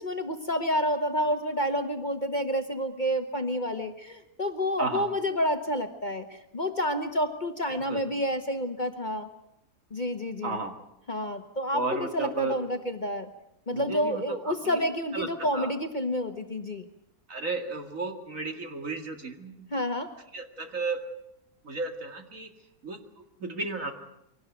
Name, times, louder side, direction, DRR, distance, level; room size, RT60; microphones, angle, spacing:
voice 1, 0.0-9.3 9.9-10.6 11.1-13.3 13.7-16.9 19.7-20.1, equal, 30° left, 6 dB, 1.4 m, -29 dB
voice 2, 10.4-10.7 11.7-12.6 13.7-14.4 14.6-14.8 15.1-15.7 17.3-19.7 20.3-21.1 21.6-22.5 22.8-23.9, right 3 dB, 55° right, 5 dB, 2.6 m, -33 dB
23.5 x 18.5 x 9.2 m, 0.82 s
omnidirectional pair, 1.7 m